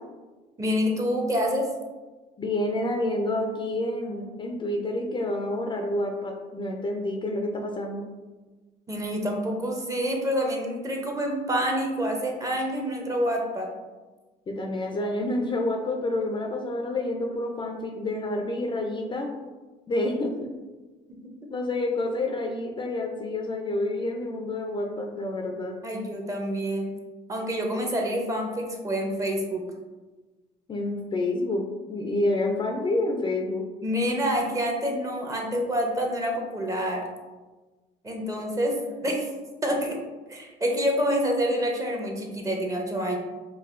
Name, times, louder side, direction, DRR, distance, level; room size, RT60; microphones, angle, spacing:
voice 1, 0.6-1.7 8.9-13.7 25.8-26.9 27.3-29.6 33.8-37.0 38.0-38.8 39.0-39.3 39.6-40.0 40.3-43.2, equal, 20° right, 1 dB, 0.7 m, -27 dB
voice 2, 2.4-8.0 14.5-19.3 19.9-20.5 21.5-25.8 30.7-33.7, left 2 dB, 30° left, 2 dB, 0.4 m, -28 dB
5.3 x 2.3 x 2.5 m, 1.2 s
cardioid pair, 110°, 17 cm